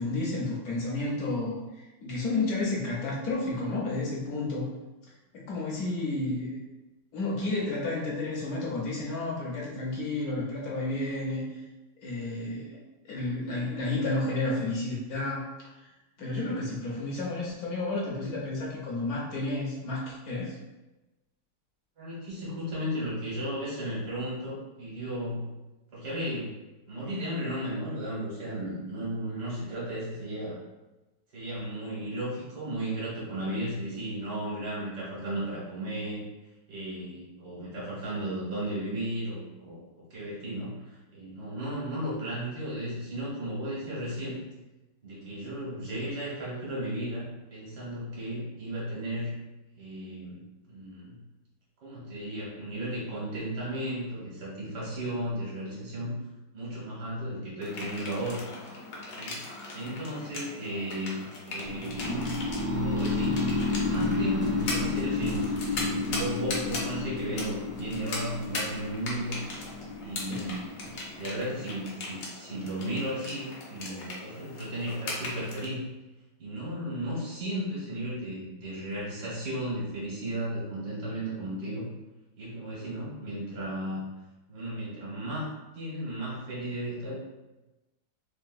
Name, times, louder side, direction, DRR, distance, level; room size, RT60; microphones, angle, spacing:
voice 1, 0.0-4.7 5.3-6.6 7.1-11.5 12.0-12.8 13.0-15.4 16.2-20.5 70.3-70.6, left 2 dB, 70° left, -3 dB, 1.0 m, -31 dB
voice 2, 22.0-25.5 25.9-26.5 26.9-30.6 31.3-36.2 36.7-39.8 40.1-44.4 45.0-49.3 49.8-50.4 50.7-51.2 51.8-56.2 56.5-58.5 59.1-59.4 59.7-62.1 62.7-63.4 63.8-69.4 70.0-75.9 76.4-81.9 82.4-84.0 84.5-85.5 85.7-87.1, right 1 dB, 75° right, -7 dB, 1.8 m, -35 dB
sound 1, 57.6-75.7, left 2 dB, 90° left, 1.4 m, -39 dB
sound 2, 61.6-71.6, left 3 dB, 45° right, 0.7 m, -31 dB
3.9 x 2.0 x 2.5 m, 1.1 s
omnidirectional pair, 1.9 m